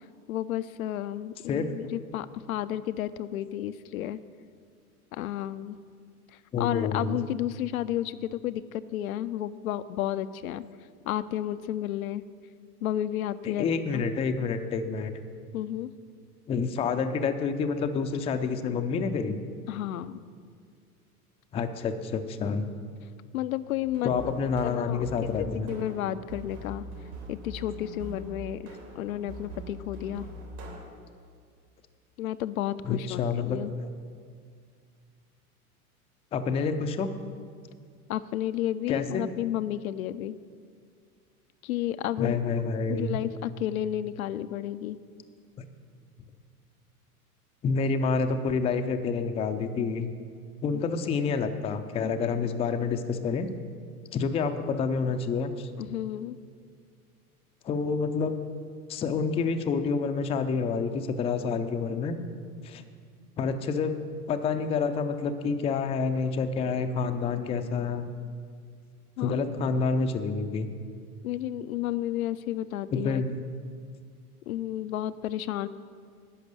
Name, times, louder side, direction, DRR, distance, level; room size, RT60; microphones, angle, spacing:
voice 1, 0.3-4.2 5.1-5.8 6.3-10.6 11.1-12.2 12.8-14.0 15.5-15.9 19.7-20.2 23.3-24.1 24.6-26.8 27.3-30.3 32.2-33.7 38.1-40.4 41.6-42.4 42.9-45.0 50.7-50.8 55.8-56.4 69.2-69.4 71.2-73.2 74.5-75.7, left 12 dB, 70° left, 13 dB, 0.5 m, -32 dB
voice 2, 6.5-7.3 13.4-15.1 16.5-19.4 21.5-22.7 24.0-25.7 32.8-33.9 36.3-37.1 38.9-39.2 42.2-43.2 47.6-50.1 50.6-53.5 54.1-55.7 57.6-58.4 58.9-62.2 62.6-62.8 63.4-64.0 64.3-68.1 69.2-70.7 72.9-73.4, left 5 dB, 15° left, 7 dB, 0.4 m, -28 dB
sound 1, 23.8-30.7, right 1 dB, 70° right, 3.5 m, -42 dB
11.0 x 5.9 x 8.2 m, 2.1 s
figure-of-eight pair, 90°, 45 cm